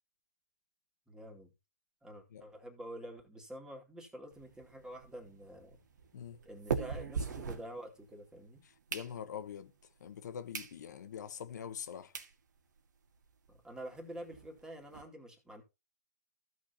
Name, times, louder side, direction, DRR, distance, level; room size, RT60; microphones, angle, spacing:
voice 1, 1.1-1.5 2.0-5.8 6.4-8.6 13.5-15.6, right 1 dB, 5° right, 2.5 m, -48 dB
sound 1, 4.3-8.3 8.6-9.6 10.1-10.2 10.5-10.8 11.2-11.3 11.8-11.9 12.1-12.3 12.8-12.9 13.0-13.2 13.5-13.6 13.9-15.0, right 6 dB, 80° right, 1.9 m, -41 dB
voice 2, 8.6-9.7 10.0-12.2, left 8 dB, 70° left, 1.1 m, -44 dB
15.0 x 6.3 x 2.9 m
hypercardioid pair, 135°, 10 cm